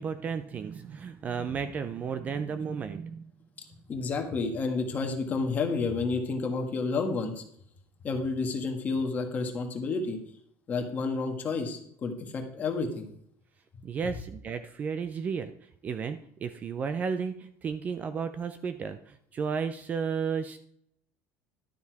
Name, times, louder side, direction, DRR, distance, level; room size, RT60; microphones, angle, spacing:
voice 1, 0.0-3.3 13.8-15.5 15.8-20.6, right 6 dB, 25° right, 11 dB, 0.5 m, -33 dB
voice 2, 3.9-7.4 8.0-10.2 10.7-13.1, left 4 dB, 25° left, 3 dB, 1.6 m, -30 dB
12.0 x 7.0 x 4.7 m, 0.68 s
cardioid pair, 170°, 6 cm